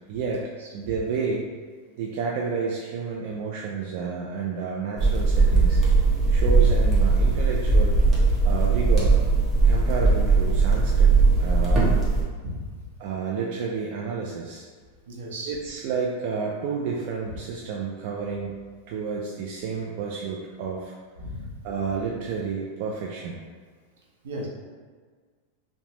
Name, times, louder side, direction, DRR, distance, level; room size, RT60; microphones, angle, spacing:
voice 1, 0.1-1.5 2.0-5.8 6.3-8.0 8.4-9.2 9.6-11.1 11.4-12.0 13.0-14.7 15.5-18.5 18.9-20.9 21.6-23.4, right 5 dB, 60° right, -3 dB, 0.3 m, -30 dB
sound 1, 5.0-12.2, right 3 dB, 25° right, 0.8 m, -19 dB
voice 2, 12.4-12.9 15.1-15.5 17.3-17.4 21.2-21.5 24.2-24.5, equal, 85° right, -3 dB, 0.7 m, -35 dB
3.1 x 2.1 x 2.8 m, 1.6 s
hypercardioid pair, 120°, 0 cm